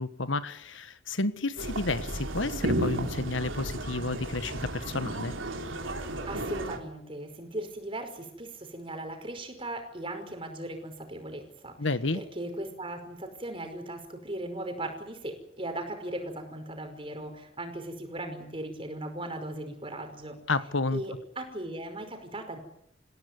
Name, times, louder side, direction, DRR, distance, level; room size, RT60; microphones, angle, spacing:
voice 1, 0.0-5.3 11.8-12.2 20.5-21.0, left 3 dB, 80° left, 13 dB, 1.4 m, -31 dB
sound 1, 1.6-6.8, right 1 dB, 90° right, 3.7 m, -33 dB
voice 2, 6.2-11.8 12.1-20.4 20.9-22.6, right 1 dB, 30° right, 6 dB, 5.3 m, -38 dB
28.0 x 16.5 x 9.6 m, 0.71 s
head